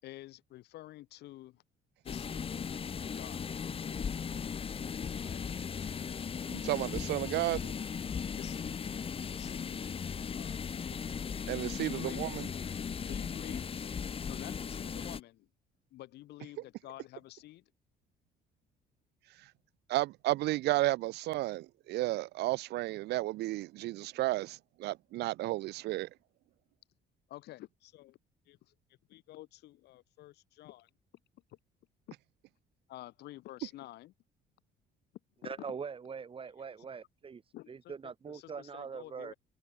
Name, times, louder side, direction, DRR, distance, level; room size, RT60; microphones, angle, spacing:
voice 1, 0.0-1.6 2.0-2.6 3.0-3.4 5.2-5.4 8.4-9.0 9.3-10.6 11.8-12.2 13.0-13.7 14.2-15.5 15.9-17.7 27.3-28.2 28.5-28.7 29.1-30.9 31.5-31.6 32.9-34.1 35.4-35.7 37.5-39.3, left 16 dB, 80° left, 6.3 m, -50 dB
sound 1, 2.1-15.2, left 6 dB, 35° left, 1.4 m, -37 dB
voice 2, 6.5-7.7 11.5-12.4 19.9-26.1, right 17 dB, 80° right, 1.1 m, -32 dB
voice 3, 35.4-37.4 37.7-39.3, right 6 dB, 30° right, 2.9 m, -42 dB
cardioid pair, 110°, 17 cm